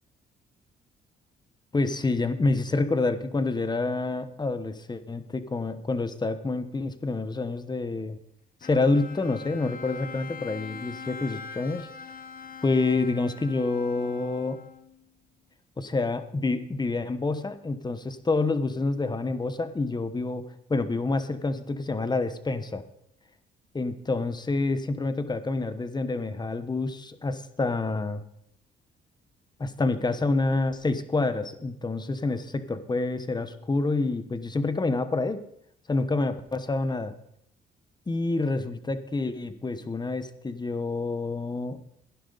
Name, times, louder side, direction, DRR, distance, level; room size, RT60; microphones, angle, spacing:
voice 1, 1.7-8.2 8.6-11.9 12.6-14.6 15.8-20.4 20.7-22.8 23.7-28.2 29.6-35.4 35.9-37.1 38.1-41.8, left 3 dB, 20° left, 11 dB, 1.1 m, -28 dB
Bowed string instrument, 8.6-15.0, left 6 dB, 45° left, 0.8 m, -43 dB
16.0 x 10.5 x 4.0 m, 0.74 s
cardioid pair, 90°, 20 cm